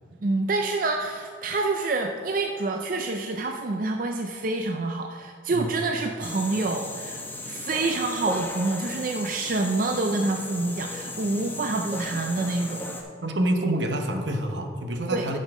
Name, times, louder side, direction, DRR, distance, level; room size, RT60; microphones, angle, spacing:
voice 1, 0.2-13.0 15.1-15.3, right 3 dB, 50° right, 4 dB, 0.4 m, -27 dB
sound 1, 6.2-13.0, left 1 dB, 10° left, 0.9 m, -36 dB
voice 2, 13.2-15.4, right 1 dB, 75° right, 5 dB, 1.0 m, -27 dB
11.0 x 5.4 x 5.0 m, 2.1 s
head